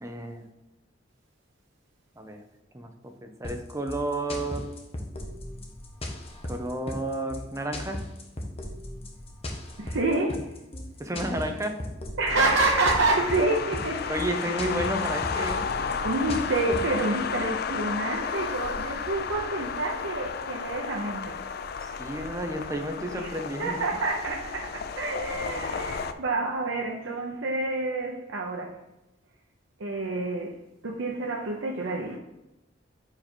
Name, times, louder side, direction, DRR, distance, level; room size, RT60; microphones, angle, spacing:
voice 1, 0.0-0.4 2.2-2.4 2.7-2.9 3.2-4.7 6.5-8.0 11.0-11.8 14.1-15.7 21.8-23.8, right 1 dB, 15° right, 5 dB, 0.6 m, -31 dB
sound 1, 3.4-17.0, left 1 dB, 30° left, 0.9 m, -37 dB
voice 2, 9.8-10.5 12.2-14.3 15.3-15.8 16.0-21.4 23.1-23.3 23.6-28.8 29.8-30.6 30.8-32.2, right 2 dB, 80° right, 0 dB, 0.7 m, -28 dB
sound 2, 12.3-26.1, left 6 dB, 55° left, 0.4 m, -33 dB
5.0 x 4.9 x 4.4 m, 0.98 s
head